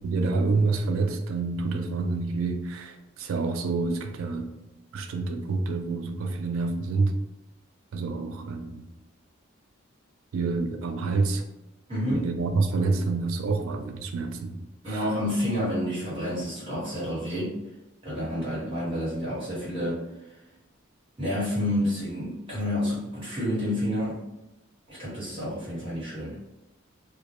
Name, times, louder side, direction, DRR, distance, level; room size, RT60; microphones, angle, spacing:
voice 1, 0.0-4.5 4.9-7.1 7.9-8.8 10.3-11.4 12.1-14.6 14.9-15.1, right 3 dB, 85° right, 5 dB, 0.3 m, -27 dB
voice 2, 11.9-12.3 14.8-17.5 18.0-20.0 21.2-24.2 24.9-26.3, equal, 25° right, -9 dB, 1.3 m, -29 dB
2.2 x 2.1 x 2.8 m, 0.96 s
head